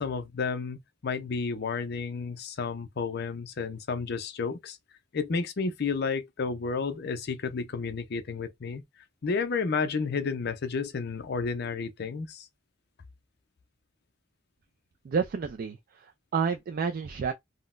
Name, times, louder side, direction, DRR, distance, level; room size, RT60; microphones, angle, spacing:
voice 1, 0.0-4.8 5.1-8.8 9.2-12.5, left 5 dB, 55° left, 0.5 m, -31 dB
voice 2, 15.0-17.3, right 6 dB, 50° right, 0.3 m, -30 dB
3.7 x 2.1 x 2.4 m
head